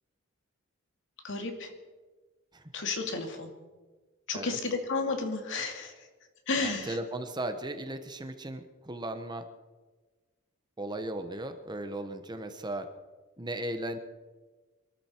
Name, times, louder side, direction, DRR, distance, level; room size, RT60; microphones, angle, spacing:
voice 1, 1.2-1.7 2.7-3.5 4.3-5.9 6.5-7.0, left 3 dB, 60° left, 4 dB, 2.5 m, -32 dB
voice 2, 6.6-9.5 10.8-12.9 13.4-14.0, right 1 dB, 20° right, 8 dB, 1.0 m, -36 dB
24.0 x 13.5 x 4.5 m, 1.3 s
head